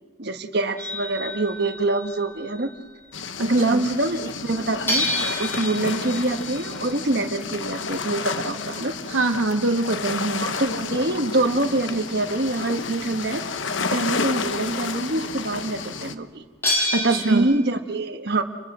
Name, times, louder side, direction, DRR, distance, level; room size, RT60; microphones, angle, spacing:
voice 1, 0.2-2.7 3.4-5.1 5.4-8.9 10.4-13.4 13.9-16.4 17.0-18.4, right 2 dB, 50° right, 6 dB, 1.4 m, -25 dB
sound 1, 0.8-3.0 4.9-11.5 16.6-17.4, left 1 dB, 10° left, 6.2 m, -31 dB
sound 2, 3.1-16.2, left 4 dB, 65° left, 1.0 m, -31 dB
voice 2, 3.4-3.8 9.1-10.6 16.9-17.5, right 2 dB, 80° right, 6 dB, 0.9 m, -24 dB
29.0 x 24.5 x 6.1 m, 1.4 s
head